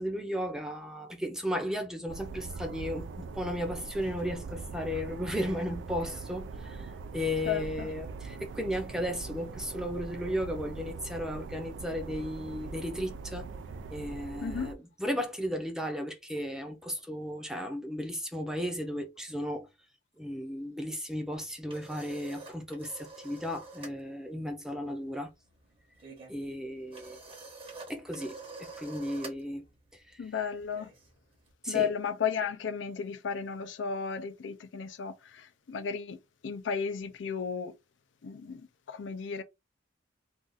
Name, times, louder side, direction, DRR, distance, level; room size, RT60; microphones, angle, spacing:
voice 1, 0.0-6.9 7.1-13.5 13.9-19.7 20.2-25.3 26.3-27.2 27.9-29.6 31.6-31.9, equal, 5° right, 0.6 m, -35 dB
sound 1, 2.1-14.7, right 4 dB, 80° right, 0.3 m, -42 dB
voice 2, 7.4-7.9 14.4-14.7 30.2-30.9 31.7-37.7 38.2-39.4, left 6 dB, 85° left, 0.4 m, -34 dB
sound 2, 21.3-24.0 24.3-24.6 24.8-31.5, right 3 dB, 30° right, 0.9 m, -48 dB
2.5 x 2.4 x 3.8 m
head